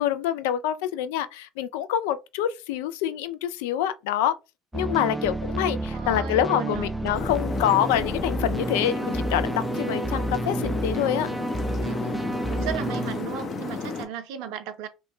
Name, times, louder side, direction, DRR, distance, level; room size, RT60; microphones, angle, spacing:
voice 1, 0.0-4.4 4.7-11.3, left 11 dB, 70° left, 0.3 m, -26 dB
sound 1, 4.7-13.2, right 2 dB, 10° right, 0.4 m, -30 dB
voice 2, 5.9-6.9 11.8-14.9, right 9 dB, 65° right, 0.5 m, -36 dB
sound 2, 7.1-14.0, left 4 dB, 40° left, 0.8 m, -33 dB
3.0 x 2.2 x 3.0 m
figure-of-eight pair, 60°, 0 cm